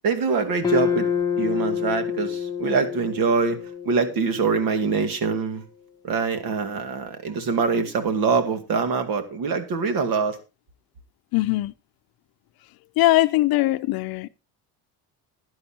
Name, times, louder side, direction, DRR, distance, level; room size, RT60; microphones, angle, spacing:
voice 1, 0.0-1.1 1.3-3.6 3.8-5.6 6.0-10.4, right 5 dB, 60° right, 2.2 m, -24 dB
sound 1, 0.6-5.0, left 7 dB, 10° left, 1.1 m, -27 dB
voice 2, 11.3-11.7 13.0-14.3, left 17 dB, 65° left, 0.7 m, -20 dB
15.5 x 11.0 x 2.9 m
cardioid pair, 145°, 39 cm